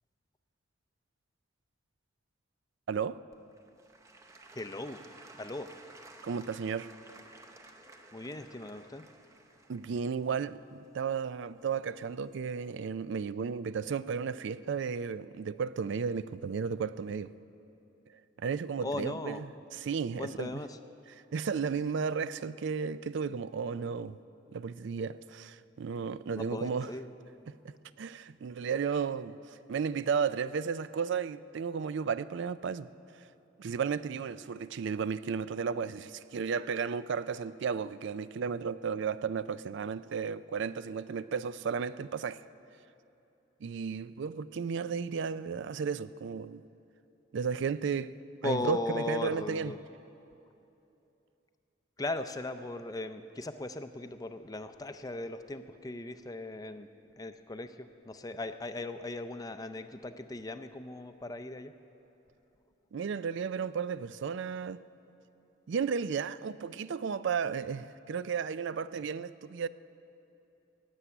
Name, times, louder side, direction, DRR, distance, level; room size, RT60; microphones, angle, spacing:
voice 1, 2.9-3.2 6.2-6.9 9.7-17.3 18.4-20.6 21.1-24.2 24.5-27.0 27.5-29.4 29.7-32.9 33.6-42.4 43.6-46.6 47.3-48.1 48.4-49.7 62.9-64.8 65.7-69.7, right 6 dB, 60° right, 0.4 m, -34 dB
Applause / Crowd, 3.3-12.2 12.8-12.9, right 2 dB, 15° right, 0.7 m, -55 dB
voice 2, 4.6-5.0 5.4-5.7 8.1-9.0 18.8-19.4 20.2-20.7 26.4-27.1 48.4-49.8 52.0-56.9 57.2-57.7 58.1-61.7, left 2 dB, 20° left, 0.5 m, -38 dB
16.0 x 8.1 x 9.6 m
head